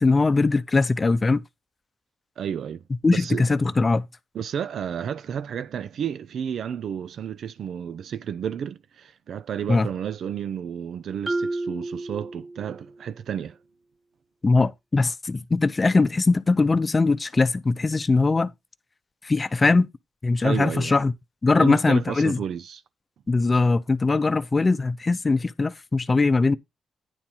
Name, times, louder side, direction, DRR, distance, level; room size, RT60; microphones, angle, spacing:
voice 1, 0.0-1.4 3.0-4.1 9.7-9.9 14.4-18.5 19.2-19.9 20.2-21.1 21.4-22.4 23.3-26.5, left 3 dB, 30° left, 0.6 m, -21 dB
voice 2, 2.4-2.8 3.1-3.4 4.3-13.6 20.4-20.9 21.6-22.8, right 8 dB, 70° right, 0.5 m, -31 dB
Marimba xylophone, 11.3-13.0, right 2 dB, 25° right, 0.6 m, -31 dB
10.0 x 4.4 x 5.4 m
cardioid pair, 80°, 0 cm